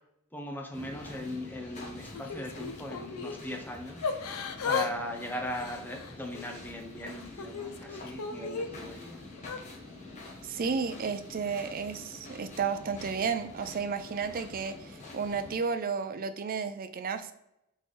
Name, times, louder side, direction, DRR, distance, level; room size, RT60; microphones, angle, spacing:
voice 1, 0.3-4.0 4.6-9.2, equal, 10° left, 3 dB, 0.6 m, -39 dB
sound 1, 0.7-15.5, left 2 dB, 35° left, 1.1 m, -47 dB
Yell / Crying sobbing, 2.1-3.4 4.0-4.9 5.2-6.5 7.0-8.7 9.4-9.6, left 5 dB, 75° left, 0.5 m, -35 dB
voice 2, 10.4-17.3, right 5 dB, 40° right, 10 dB, 0.4 m, -32 dB
3.9 x 3.8 x 3.2 m, 0.84 s
head